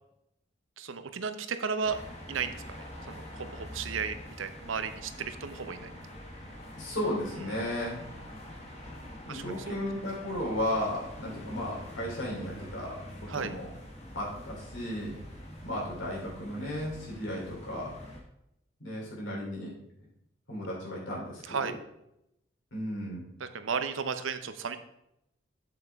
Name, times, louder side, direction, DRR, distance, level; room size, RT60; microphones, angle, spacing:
voice 1, 0.8-2.0 2.3-2.6 3.1-5.9 7.5-7.6 9.3-9.8 13.3-13.5 21.5-21.7 23.4-24.8, right 5 dB, 90° right, 10 dB, 0.7 m, -34 dB
sound 1, 1.8-18.2, equal, 35° left, 1.4 m, -45 dB
voice 2, 6.8-8.0 9.3-13.0 13.3-13.7 14.1-15.2 15.6-17.9 18.8-19.7 20.5-21.7 22.7-23.3, left 1 dB, 80° left, -4 dB, 3.4 m, -34 dB
7.7 x 7.2 x 3.5 m, 0.82 s
head